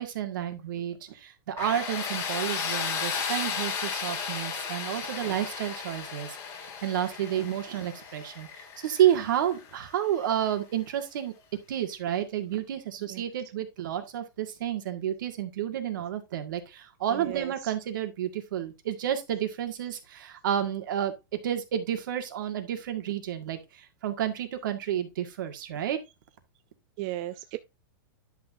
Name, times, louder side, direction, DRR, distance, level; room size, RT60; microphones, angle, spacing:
voice 1, 0.0-11.3 11.7-21.1 21.4-26.0, right 10 dB, 60° right, 1.9 m, -30 dB
Tools, 1.6-10.3, left 6 dB, 25° left, 1.4 m, -34 dB
voice 2, 17.1-17.7 27.0-27.6, right 16 dB, 30° right, 0.4 m, -36 dB
10.5 x 6.2 x 2.6 m
supercardioid pair, 170°, 12 cm